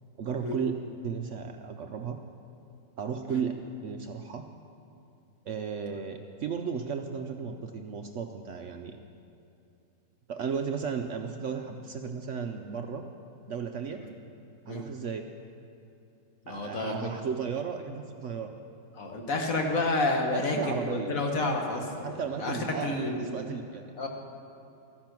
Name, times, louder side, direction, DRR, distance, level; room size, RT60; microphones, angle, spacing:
voice 1, 0.2-2.2 3.0-3.5 3.8-4.4 5.5-9.0 10.3-13.0 13.5-14.0 14.7-15.3 16.5-18.5 20.3-21.2 22.0-23.9, right 6 dB, 70° right, 5 dB, 0.7 m, -34 dB
voice 2, 16.5-17.1 19.0-23.4 24.0-24.1, left 2 dB, 50° left, 2 dB, 1.6 m, -30 dB
13.5 x 10.5 x 6.0 m, 2.7 s
omnidirectional pair, 1.9 m